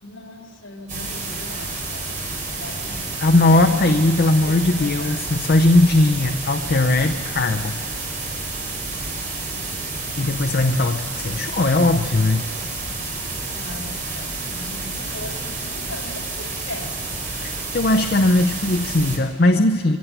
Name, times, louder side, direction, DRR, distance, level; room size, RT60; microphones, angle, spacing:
voice 1, 0.0-3.1 3.5-4.0 4.4-5.3 13.5-17.0, left 1 dB, 65° left, 0 dB, 2.6 m, -38 dB
sound 1, 0.9-19.2, right 3 dB, 40° right, 3.8 m, -30 dB
voice 2, 3.2-7.8 10.2-12.5 17.3-20.0, left 2 dB, 50° left, 5 dB, 0.6 m, -19 dB
22.0 x 16.0 x 8.2 m, 2.3 s
head